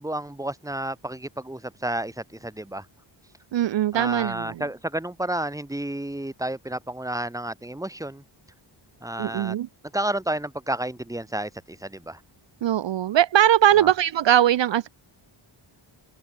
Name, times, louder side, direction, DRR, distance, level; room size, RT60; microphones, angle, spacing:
voice 1, 0.0-2.9 3.9-8.2 9.0-9.6 9.9-12.2 13.8-13.9, right 1 dB, 5° right, 2.2 m, -31 dB
voice 2, 3.5-4.6 9.2-9.7 12.6-14.9, right 11 dB, 65° right, 0.6 m, -20 dB
wide cardioid pair, 150°, 49 cm